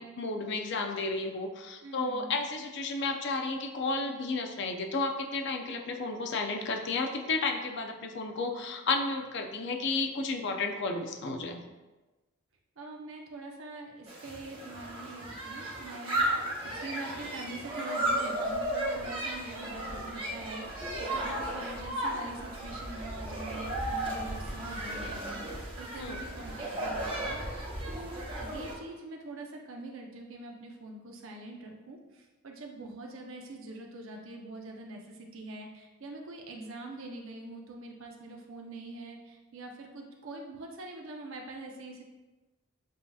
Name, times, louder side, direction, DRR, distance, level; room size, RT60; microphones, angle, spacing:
voice 1, 0.0-11.6 26.0-26.2, left 3 dB, 55° left, 3 dB, 0.5 m, -32 dB
voice 2, 1.8-2.4 12.8-27.4 27.9-42.0, right 2 dB, 65° right, 1 dB, 0.7 m, -44 dB
sound 1, 14.1-28.8, right 1 dB, 25° right, 0.8 m, -34 dB
7.3 x 2.7 x 2.3 m, 1.1 s
head